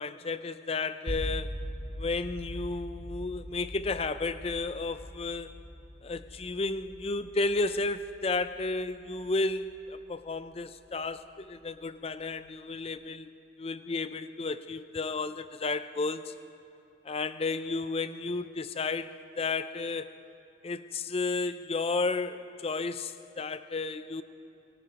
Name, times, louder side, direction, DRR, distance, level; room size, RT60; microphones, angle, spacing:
voice 1, 0.0-1.7 2.0-5.6 6.0-13.3 13.6-16.3 17.1-20.1 20.6-24.2, left 3 dB, 30° left, 12 dB, 0.5 m, -33 dB
sound 1, 1.1-11.1, equal, 20° right, 3.2 m, -42 dB
28.0 x 17.5 x 2.9 m, 2.9 s
head